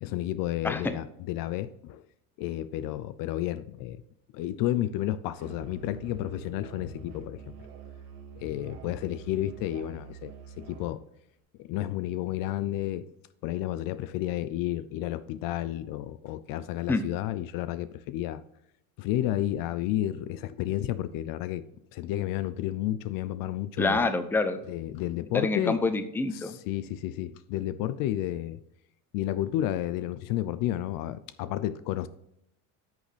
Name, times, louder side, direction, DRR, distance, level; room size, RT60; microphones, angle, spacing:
voice 1, 0.0-2.0 2.4-4.0 4.3-7.5 8.4-11.0 11.6-13.1 13.4-18.4 19.0-21.6 21.9-24.1 24.7-25.8 26.3-28.6 29.1-32.1, left 13 dB, 50° left, 0.5 m, -31 dB
Musical instrument, 5.4-10.9, right 7 dB, 90° right, 2.1 m, -46 dB
voice 2, 23.8-24.6 25.3-26.6, left 3 dB, 5° left, 0.6 m, -26 dB
10.5 x 6.4 x 3.3 m
supercardioid pair, 115°, 45 cm